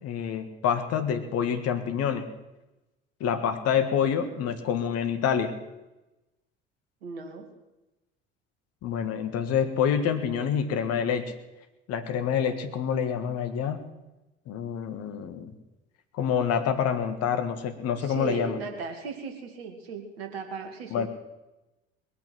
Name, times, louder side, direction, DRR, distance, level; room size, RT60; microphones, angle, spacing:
voice 1, 0.0-2.3 3.2-5.5 8.8-11.3 11.9-13.8 14.5-15.5 16.1-18.6 20.9-21.1, left 8 dB, 50° left, 8 dB, 1.8 m, -27 dB
voice 2, 4.2-4.5 7.0-7.5 18.0-21.1, right 5 dB, 70° right, 4 dB, 2.4 m, -37 dB
21.0 x 8.6 x 7.9 m, 1.0 s
figure-of-eight pair, 55°, 31 cm